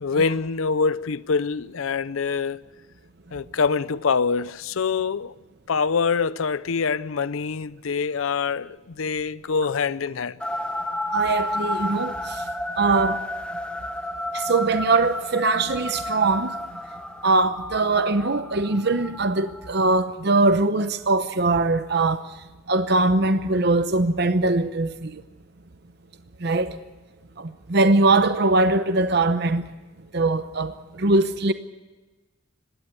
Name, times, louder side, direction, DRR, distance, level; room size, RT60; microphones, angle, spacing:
voice 1, 0.0-2.6 3.3-5.3 5.7-10.4, left 5 dB, 80° left, 0.5 m, -25 dB
sound 1, 10.4-19.9, left 1 dB, 5° left, 1.1 m, -31 dB
voice 2, 11.1-12.5 12.8-13.2 14.3-16.6 17.2-22.3 22.7-25.2 26.4-26.8 27.4-29.7 30.1-31.5, right 3 dB, 50° right, 0.8 m, -21 dB
21.0 x 17.0 x 8.0 m
head